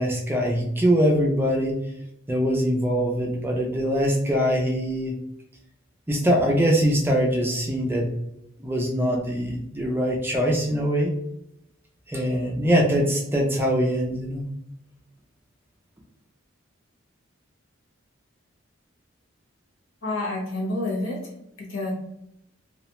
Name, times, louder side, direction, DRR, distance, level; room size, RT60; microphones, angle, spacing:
voice 1, 0.0-1.8 2.3-5.2 6.1-8.1 8.6-11.1 12.1-14.5, equal, 10° right, 0 dB, 0.3 m, -23 dB
voice 2, 20.0-21.2 21.6-21.9, left 2 dB, 75° left, -3 dB, 0.9 m, -28 dB
2.3 x 2.0 x 2.8 m, 0.78 s
head